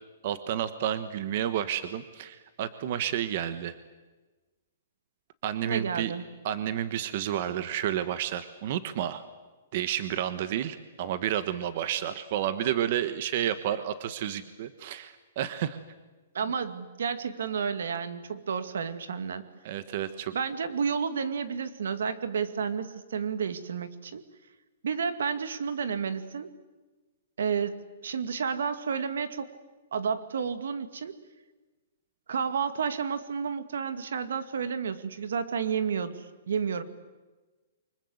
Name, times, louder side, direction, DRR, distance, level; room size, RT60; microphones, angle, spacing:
voice 1, 0.2-3.7 5.4-6.1 6.4-9.2 9.7-15.8 19.6-20.3, right 11 dB, 35° right, 12 dB, 1.2 m, -30 dB
voice 2, 5.7-6.2 16.3-19.5 20.3-24.2 24.8-26.5 27.4-29.5 29.9-31.2 32.3-36.8, right 6 dB, 80° right, 11 dB, 2.3 m, -31 dB
28.5 x 25.0 x 8.0 m, 1.2 s
hypercardioid pair, 175°, 0 cm